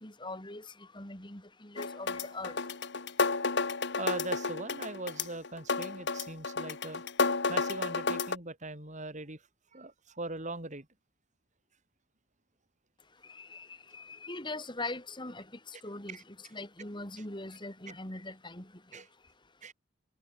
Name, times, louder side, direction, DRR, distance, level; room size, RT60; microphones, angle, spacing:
voice 1, 0.0-0.7 0.9-2.6 13.3-16.2 16.5-18.7 18.9-19.0, left 2 dB, 20° left, 3.6 m, -41 dB
sound 1, 1.8-8.4, left 4 dB, 55° left, 1.5 m, -32 dB
voice 2, 4.0-7.0 7.5-9.4 9.7-10.9 16.1-16.2 17.9-18.0 18.9-19.1 19.6-19.7, right 2 dB, 35° right, 3.2 m, -40 dB
head